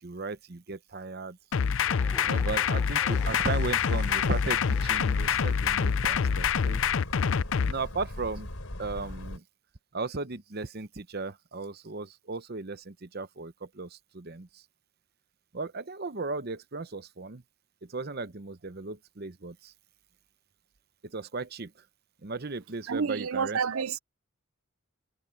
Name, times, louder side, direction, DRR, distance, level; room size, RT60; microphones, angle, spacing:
voice 1, 0.0-1.4 2.2-6.8 7.6-8.5 8.8-9.4 9.9-14.6 15.5-17.4 17.9-19.7 21.0-21.7 22.2-24.0, right 3 dB, 45° right, 0.9 m, -36 dB
sound 1, 1.5-7.7, left 7 dB, 65° left, 0.5 m, -26 dB
Chuckle chortle, 1.8-5.8, left 1 dB, 5° left, 5.8 m, -47 dB
sound 2, 3.1-9.4, left 1 dB, 85° left, 3.5 m, -39 dB
voice 2, 22.9-24.0, right 6 dB, 75° right, 0.5 m, -29 dB
head